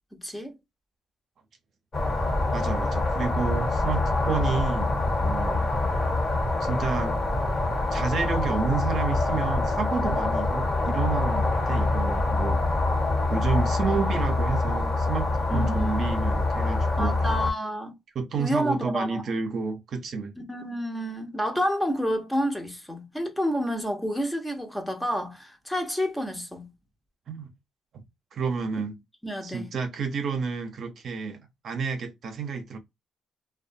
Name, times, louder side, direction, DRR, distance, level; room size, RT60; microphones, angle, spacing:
voice 1, 0.2-0.5 15.5-16.0 17.0-17.9 18.4-19.2 20.5-26.7 29.2-29.7, equal, 5° left, 0.8 m, -29 dB
sound 1, 1.9-17.5, left 2 dB, 40° left, 1.3 m, -25 dB
voice 2, 2.5-4.9 5.2-5.7 6.6-7.2 7.9-12.6 13.3-17.2 18.1-20.3 27.3-27.5 27.9-28.0 28.3-29.0 29.4-31.4 31.6-32.8, right 5 dB, 60° right, 0.6 m, -30 dB
2.5 x 2.2 x 2.6 m
cardioid pair, 90°, 0 cm